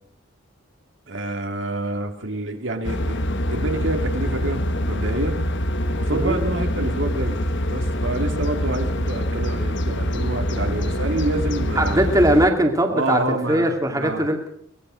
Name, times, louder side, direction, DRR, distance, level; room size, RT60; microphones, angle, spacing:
voice 1, 1.1-3.2 3.5-5.3 6.0-7.4 7.7-12.0 12.9-14.3, right 2 dB, 60° right, 4 dB, 2.6 m, -28 dB
sound 1, 2.8-12.5, equal, 55° left, 1.6 m, -25 dB
voice 2, 11.8-14.5, right 1 dB, 15° right, 3 dB, 2.6 m, -20 dB
23.0 x 19.0 x 6.4 m, 0.64 s
head